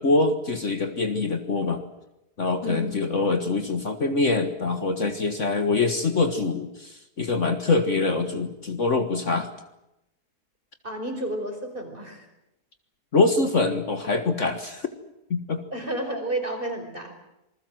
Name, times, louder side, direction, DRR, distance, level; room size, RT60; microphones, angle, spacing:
voice 1, 0.0-1.8 2.4-9.5 13.1-14.9 15.3-15.6, left 3 dB, 50° left, 7 dB, 1.8 m, -24 dB
voice 2, 2.6-2.9 10.8-12.3 15.7-17.1, right 1 dB, 30° right, 4 dB, 5.4 m, -31 dB
27.0 x 21.0 x 7.8 m, 0.89 s
omnidirectional pair, 1.7 m